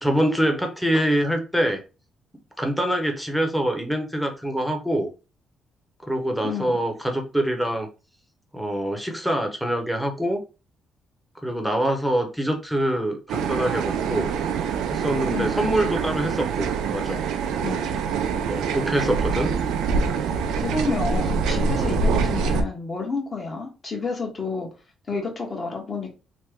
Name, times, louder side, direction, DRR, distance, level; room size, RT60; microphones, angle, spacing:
voice 1, 0.0-1.8 2.6-5.1 6.0-7.9 8.5-10.4 11.4-14.3 14.9-17.2 18.4-19.5 21.8-21.9, right 1 dB, ahead, 4 dB, 0.8 m, -25 dB
voice 2, 6.4-6.8 15.3-15.7 17.6-18.0 20.0-20.1 20.6-24.7 25.1-26.1, left 4 dB, 35° left, 0 dB, 1.1 m, -30 dB
sound 1, 13.3-22.6, right 5 dB, 85° right, 0.4 m, -25 dB
3.1 x 2.1 x 3.4 m, 0.32 s
cardioid pair, 90°, 0 cm